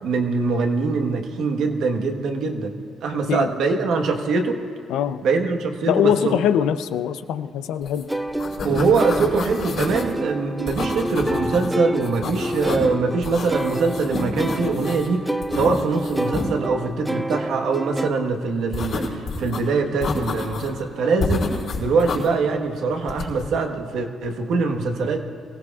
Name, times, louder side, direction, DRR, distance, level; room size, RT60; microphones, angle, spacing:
voice 1, 0.0-2.7 3.0-4.6 5.2-6.4 8.6-21.5 21.8-25.2, right 4 dB, 75° right, 4 dB, 1.3 m, -23 dB
voice 2, 4.9-5.2 5.9-8.1, left 9 dB, 90° left, 11 dB, 0.5 m, -22 dB
sound 1, 7.9-8.0 8.3-10.1 10.7-11.7 12.0-12.9 13.2-15.1 15.4-16.5 18.7-19.6 20.0-20.8 21.2-22.3 23.1-23.5, left 3 dB, 70° left, 4.2 m, -29 dB
sound 2, 8.1-18.1, right 1 dB, 5° right, 0.5 m, -28 dB
23.5 x 16.0 x 2.4 m, 2.6 s
cardioid pair, 90°, 0 cm